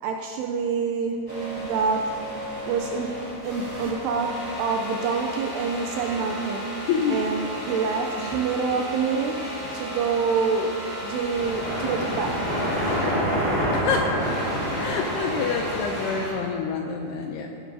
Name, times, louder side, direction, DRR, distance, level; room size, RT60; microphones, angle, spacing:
voice 1, 0.0-2.1 2.6-6.8 7.1-10.8 11.0-12.6, right 5 dB, 80° right, 2 dB, 2.4 m, -27 dB
sound 1, 1.3-13.3 13.6-16.5, equal, 10° left, 1.3 m, -35 dB
voice 2, 6.9-7.2 8.2-8.3 13.7-14.2 14.8-17.5, left 5 dB, 85° left, 2 dB, 2.4 m, -27 dB
sound 2, 11.2-16.2, equal, 30° left, 1.1 m, -27 dB
15.0 x 12.0 x 2.7 m, 2.8 s
omnidirectional pair, 5.2 m